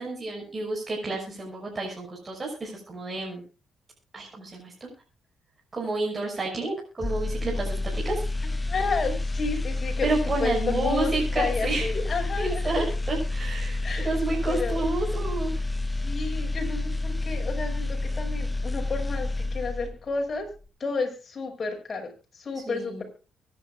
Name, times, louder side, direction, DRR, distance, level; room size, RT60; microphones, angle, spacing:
voice 1, 0.0-3.4 4.1-4.9 5.7-7.8 8.0-8.2 10.0-11.9 12.4-15.5 22.7-23.0, right 3 dB, 30° right, -2 dB, 6.0 m, -30 dB
sound 1, 7.0-20.1 20.5-20.7, left 2 dB, 15° left, 0.9 m, -29 dB
voice 2, 8.7-10.1 10.4-12.9 13.8-14.1 14.5-14.8 16.0-20.5 20.8-23.0, left 4 dB, 40° left, 3 dB, 5.9 m, -31 dB
24.0 x 10.5 x 2.5 m, 0.34 s
cardioid pair, 90°, 0 cm